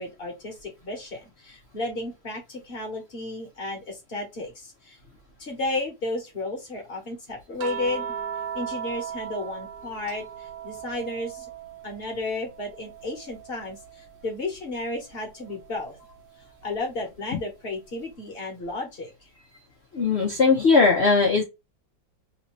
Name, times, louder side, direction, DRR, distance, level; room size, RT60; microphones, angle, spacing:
voice 1, 0.0-5.0 5.4-8.1 8.5-11.5 11.8-16.0 16.6-19.1, left 2 dB, 35° left, 1 dB, 1.1 m, -33 dB
sound 1, 7.6-12.1 12.4-14.1 15.6-15.8, right 8 dB, 70° right, 1.1 m, -37 dB
voice 2, 19.9-21.4, left 4 dB, 75° left, 1 dB, 0.6 m, -19 dB
3.4 x 2.6 x 3.0 m, 0.23 s
omnidirectional pair, 2.1 m